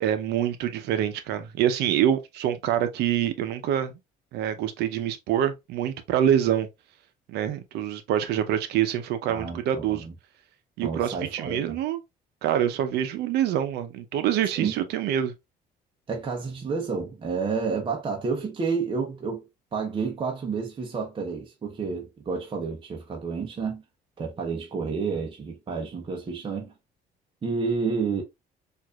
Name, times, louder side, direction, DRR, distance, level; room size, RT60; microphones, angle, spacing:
voice 1, 0.0-4.0 4.3-6.7 7.3-10.1 10.8-12.0 12.4-15.3, right 10 dB, 80° right, 0.7 m, -26 dB
voice 2, 9.3-10.1 10.8-11.8 14.5-14.7 16.1-19.4 19.7-23.8 24.2-26.7 27.4-28.2, right 5 dB, 30° right, 0.8 m, -30 dB
4.6 x 2.5 x 2.3 m
cardioid pair, 110°, 17 cm